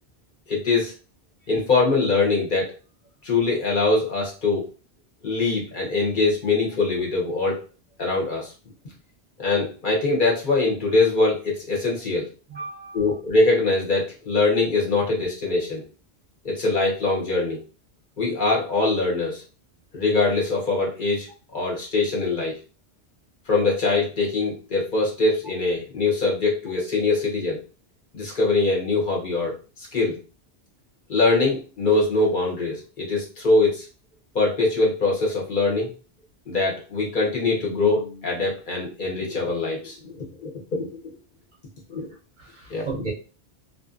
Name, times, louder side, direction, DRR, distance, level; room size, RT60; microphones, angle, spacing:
voice 1, 0.5-0.9 1.5-2.7 3.2-4.7 5.2-7.6 8.0-8.5 9.4-12.3 12.9-15.8 16.4-17.6 18.2-19.4 19.9-22.6 23.5-27.6 28.1-30.2 31.1-33.9 34.3-35.9 36.5-41.0 41.9-42.1 42.7-43.0, left 3 dB, 50° left, -2 dB, 0.9 m, -23 dB
voice 2, 12.5-13.1 42.4-43.1, right 4 dB, 55° right, -1 dB, 0.6 m, -34 dB
2.5 x 2.2 x 2.4 m, 0.35 s
omnidirectional pair, 1.1 m